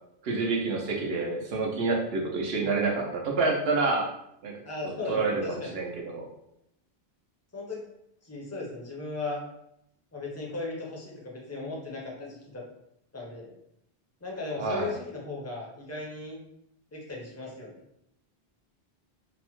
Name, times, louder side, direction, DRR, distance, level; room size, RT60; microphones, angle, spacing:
voice 1, 0.2-4.1 4.4-4.5 4.8-6.3 14.6-14.9, right 3 dB, 75° right, 0 dB, 0.8 m, -28 dB
voice 2, 4.6-5.7 7.5-7.8 8.2-9.4 10.1-12.6 13.1-13.5 14.2-16.4 16.9-17.8, left 3 dB, 20° left, -3 dB, 0.5 m, -37 dB
2.9 x 2.0 x 3.0 m, 0.79 s
omnidirectional pair, 1.0 m